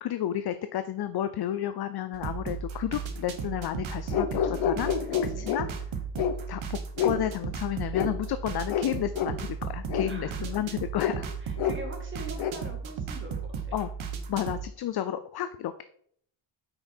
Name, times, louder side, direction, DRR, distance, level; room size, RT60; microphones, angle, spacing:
voice 1, 0.0-5.7 6.5-11.3 13.7-13.9 14.3-15.8, left 11 dB, 50° left, 11 dB, 0.5 m, -32 dB
sound 1, 2.1-14.7, right 6 dB, 70° right, 1.2 m, -35 dB
sound 2, 4.1-5.6 6.2-6.4 7.0-7.2 7.9-8.1 8.7-8.9 9.2-9.3 9.9-10.1 11.0-11.2 11.6-11.8 12.4-12.5, left 8 dB, 70° left, 0.9 m, -27 dB
voice 2, 10.0-10.6 11.4-13.3 13.6-13.8, right 1 dB, 25° right, 1 dB, 2.1 m, -43 dB
8.8 x 5.9 x 4.4 m, 0.65 s
wide cardioid pair, 165°, 50 cm